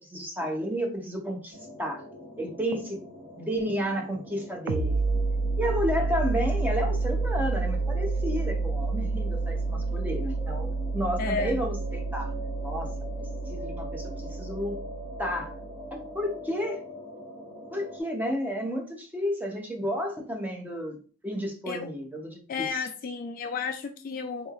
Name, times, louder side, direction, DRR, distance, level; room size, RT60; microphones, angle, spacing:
voice 1, 0.1-2.0 2.4-3.0 3.4-5.0 5.6-12.3 12.6-12.9 13.5-14.8 15.2-15.5 15.9-16.8 17.7-22.8, equal, 10° right, 2 dB, 0.5 m, -31 dB
sound 1, 1.5-18.0, equal, 45° right, 1.1 m, -43 dB
sound 2, 4.7-16.0, right 3 dB, 75° right, 0.4 m, -29 dB
voice 2, 11.2-11.6 21.7-21.9 22.5-24.5, left 5 dB, 40° left, 7 dB, 0.3 m, -32 dB
3.8 x 3.0 x 2.3 m, 0.38 s
head